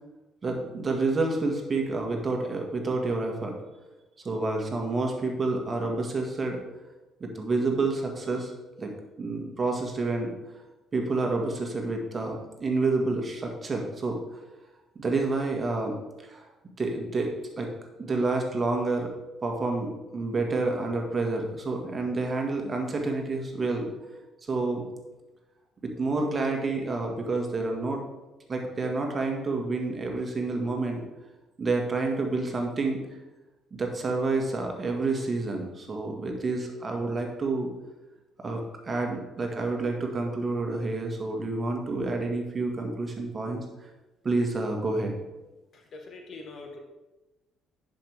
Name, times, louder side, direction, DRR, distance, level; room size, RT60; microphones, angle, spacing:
voice 1, 0.4-3.6 4.2-6.6 7.2-8.5 8.8-10.3 10.9-14.4 15.0-16.4 16.8-17.7 18.0-19.1 19.4-23.9 24.5-24.8 25.8-28.0 28.5-31.1 31.6-33.0 33.7-37.7 38.4-43.6 44.2-45.1, right 3 dB, 35° right, 2 dB, 1.7 m, -29 dB
voice 2, 45.7-46.8, left 3 dB, 55° left, 3 dB, 1.5 m, -43 dB
10.0 x 5.3 x 3.5 m, 1.1 s
hypercardioid pair, 55°, 0 cm